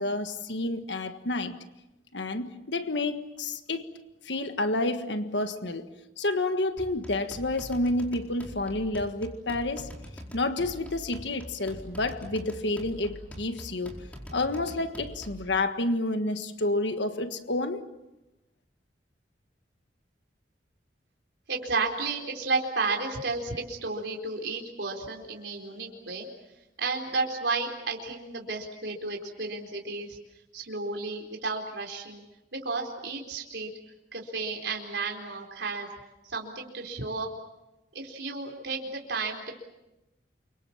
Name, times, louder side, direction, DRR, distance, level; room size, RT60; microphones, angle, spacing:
voice 1, 0.0-1.6 2.1-3.9 4.2-5.9 6.2-9.9 10.3-14.0 14.3-17.8, left 2 dB, 75° left, 1.6 m, -29 dB
sound 1, 6.8-15.5, equal, 10° left, 4.6 m, -44 dB
voice 2, 21.5-26.3 26.8-30.2 30.5-32.2 32.5-33.7 34.1-35.9 36.2-37.3 37.9-39.5, right 3 dB, 70° right, 4.3 m, -32 dB
29.0 x 24.5 x 7.4 m
head